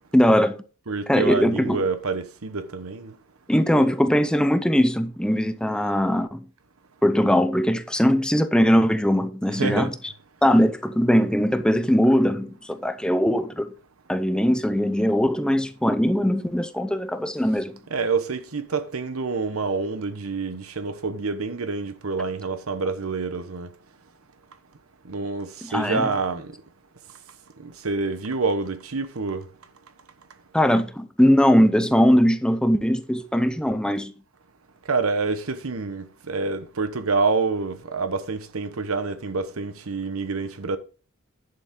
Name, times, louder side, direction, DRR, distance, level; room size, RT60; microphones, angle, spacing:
voice 1, 0.1-0.6 1.1-1.8 3.5-6.5 7.0-10.1 10.4-13.7 14.1-17.8 25.6-26.1 30.5-34.1, equal, 5° left, 0.6 m, -20 dB
voice 2, 0.9-3.1 9.6-9.9 17.9-23.7 25.1-26.5 27.6-29.5 34.9-40.8, right 4 dB, 90° right, 1.0 m, -27 dB
10.5 x 7.0 x 3.7 m
head